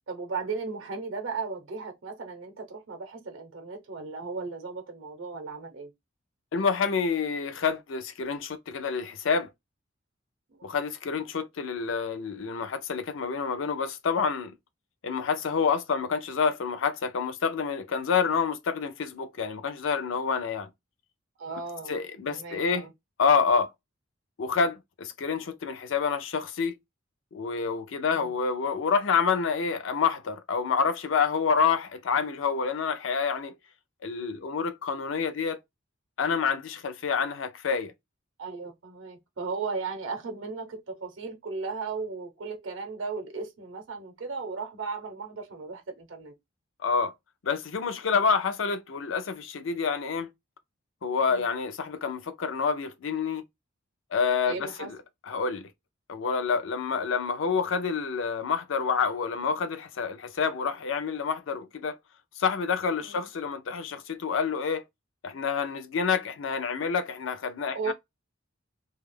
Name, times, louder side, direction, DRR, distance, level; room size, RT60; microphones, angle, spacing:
voice 1, 0.1-5.9 10.5-10.7 21.4-22.9 28.1-28.3 38.4-46.3 51.3-51.4 54.5-54.9 63.0-63.3 67.7-67.9, right 4 dB, 70° right, 0.6 m, -36 dB
voice 2, 6.5-9.5 10.6-14.5 15.0-20.7 21.9-22.9 23.2-23.7 24.4-26.8 27.3-33.5 34.0-35.6 36.2-37.9 46.8-47.1 47.4-50.3 51.0-53.4 54.1-55.0 55.3-55.7 56.1-62.0 62.4-64.8 65.2-67.9, left 5 dB, 70° left, 0.5 m, -28 dB
2.3 x 2.0 x 3.1 m
head